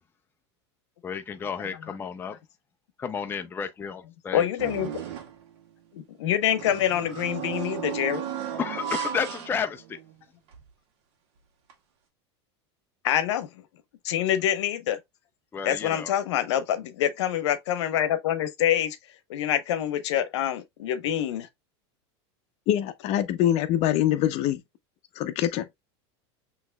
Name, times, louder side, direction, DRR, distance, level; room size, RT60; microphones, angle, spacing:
voice 1, 1.0-2.4 3.0-4.5 8.6-10.0 15.5-16.1, left 6 dB, 15° left, 0.4 m, -32 dB
voice 2, 4.3-4.9 5.9-8.2 13.0-13.5 14.0-15.0 15.6-19.0 19.3-21.5, left 10 dB, 85° left, 0.8 m, -26 dB
sound 1, 4.6-5.4 6.5-10.1 10.5-10.6 11.7-11.8, right 9 dB, 75° right, 1.4 m, -35 dB
voice 3, 22.7-24.6 25.2-25.7, left 11 dB, 45° left, 0.7 m, -24 dB
6.0 x 3.0 x 2.2 m
supercardioid pair, 130°, 14 cm